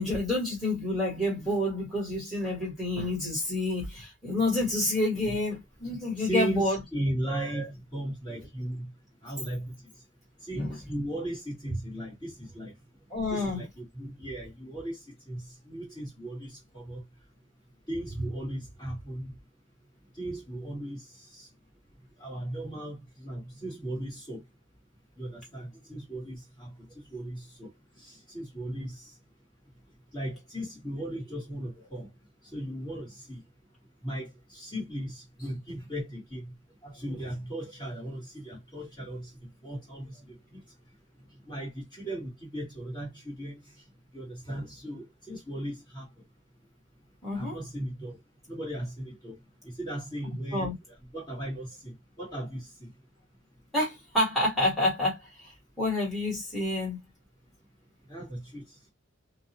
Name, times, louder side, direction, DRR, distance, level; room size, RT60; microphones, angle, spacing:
voice 1, 0.0-6.8 7.3-7.7 10.5-10.8 13.1-13.6 47.2-47.6 50.5-50.7 53.7-57.0, left 1 dB, ahead, 1.4 m, -29 dB
voice 2, 6.2-7.6 7.9-8.8 9.2-9.7 10.5-12.7 13.3-15.0 15.3-15.4 15.7-17.0 17.9-19.3 20.2-21.0 22.2-23.0 23.2-24.4 25.2-26.7 27.1-27.7 28.3-28.9 30.1-32.1 32.5-33.4 34.0-36.4 36.8-39.3 39.6-40.1 41.5-43.6 44.1-46.0 47.3-48.2 48.5-49.3 49.8-50.7 51.1-52.9 58.1-58.6, right 1 dB, 20° left, 1.4 m, -36 dB
2.6 x 2.0 x 2.7 m
head